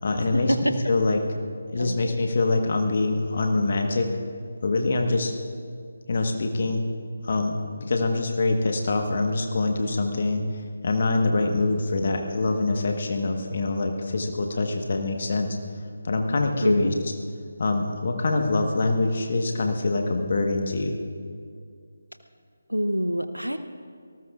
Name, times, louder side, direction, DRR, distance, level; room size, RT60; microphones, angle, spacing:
voice 1, 0.0-1.2 1.7-4.1 4.6-5.3 6.1-6.8 7.2-15.5 16.0-16.9 17.6-21.0, left 3 dB, 45° left, 4 dB, 1.3 m, -24 dB
voice 2, 16.6-16.9 22.7-23.6, equal, 90° right, 9 dB, 0.8 m, -25 dB
27.5 x 19.0 x 2.5 m, 2.2 s
figure-of-eight pair, 150°, 0 cm